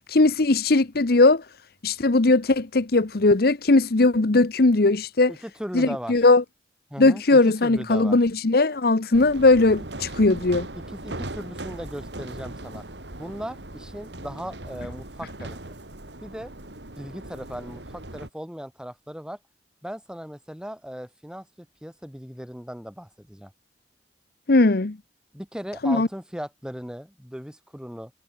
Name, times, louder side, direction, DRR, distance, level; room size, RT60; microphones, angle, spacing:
voice 1, 0.0-1.4 1.8-5.3 5.7-6.4 7.0-10.7 24.5-25.0 25.8-26.1, left 2 dB, 60° left, 0.9 m, -19 dB
voice 2, 5.3-6.1 6.9-8.2 10.7-12.8 13.2-15.8 16.2-16.5 17.0-19.4 19.8-23.5 25.3-28.1, equal, 5° right, 4.5 m, -37 dB
sound 1, 9.1-18.3, right 1 dB, 80° right, 4.1 m, -39 dB
head